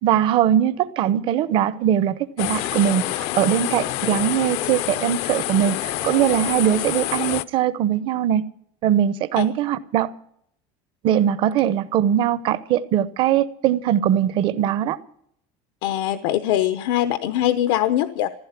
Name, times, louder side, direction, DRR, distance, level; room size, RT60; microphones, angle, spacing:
voice 1, 0.0-8.4 8.8-10.1 11.0-15.0, right 10 dB, 45° right, 0.8 m, -21 dB
sound 1, 2.4-7.4, left 15 dB, 55° left, 0.6 m, -27 dB
voice 2, 15.8-18.3, left 12 dB, 85° left, 0.9 m, -22 dB
15.5 x 14.0 x 5.9 m
cardioid pair, 180°, 12 cm